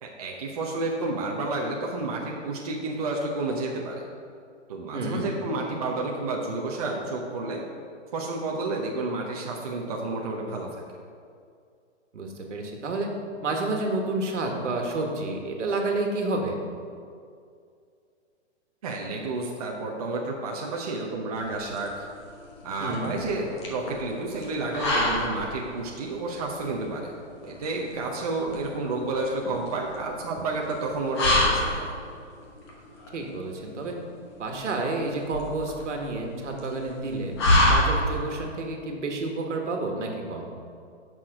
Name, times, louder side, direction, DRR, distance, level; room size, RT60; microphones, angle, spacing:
voice 1, 0.0-4.0 4.7-7.6 8.1-10.7 18.8-22.1 22.6-27.2 27.4-31.9, right 2 dB, 30° right, -1 dB, 0.7 m, -30 dB
voice 2, 4.9-5.3 12.1-13.1 13.4-16.6 22.8-23.1 33.1-33.9 34.4-37.3 37.6-40.5, right 2 dB, 75° right, 2 dB, 1.6 m, -30 dB
sound 1, 21.3-38.4, left 1 dB, 20° left, 1.0 m, -28 dB
8.5 x 6.0 x 4.9 m, 2.3 s
hypercardioid pair, 170°, 36 cm